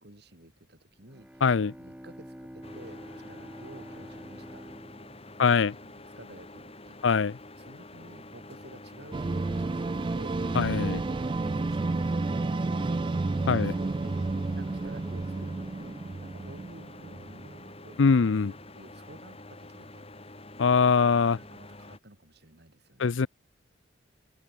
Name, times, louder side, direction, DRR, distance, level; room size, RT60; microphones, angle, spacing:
voice 1, 0.0-1.4 1.8-4.7 5.0-7.0 7.6-10.4 13.5-14.1 14.5-20.1 21.4-23.3, right 1 dB, 55° right, 4.0 m, -52 dB
Bowed string instrument, 0.9-6.6, equal, 5° right, 1.4 m, -48 dB
voice 2, 1.4-1.7 5.4-5.7 7.0-7.3 10.6-11.0 13.5-13.7 18.0-18.5 20.6-21.4 23.0-23.3, left 5 dB, 80° left, 0.5 m, -22 dB
sound 1, 2.6-22.0, left 2 dB, 30° left, 5.5 m, -47 dB
sound 2, 9.1-17.7, right 3 dB, 25° right, 0.3 m, -31 dB
open air
head